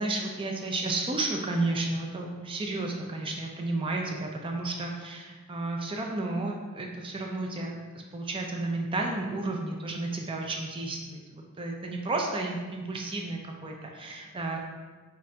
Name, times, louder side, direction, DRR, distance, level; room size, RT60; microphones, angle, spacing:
voice 1, 0.0-14.6, right 2 dB, 25° right, 1 dB, 0.4 m, -32 dB
5.2 x 2.6 x 2.8 m, 1.4 s
head